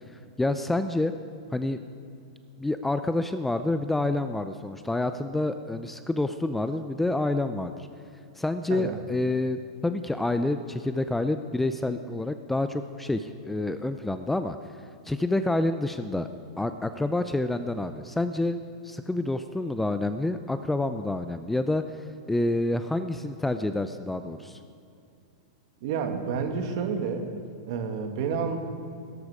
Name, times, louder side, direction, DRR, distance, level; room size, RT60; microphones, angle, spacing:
voice 1, 0.4-1.1 1.5-1.8 2.6-7.9 8.4-14.6 15.1-16.3 16.6-24.6, left 2 dB, 5° left, 9 dB, 0.4 m, -28 dB
voice 2, 8.7-9.0 25.8-27.3 27.7-28.6, right 6 dB, 55° right, 6 dB, 1.8 m, -29 dB
17.0 x 13.5 x 4.9 m, 2.5 s
hypercardioid pair, 140°, 3 cm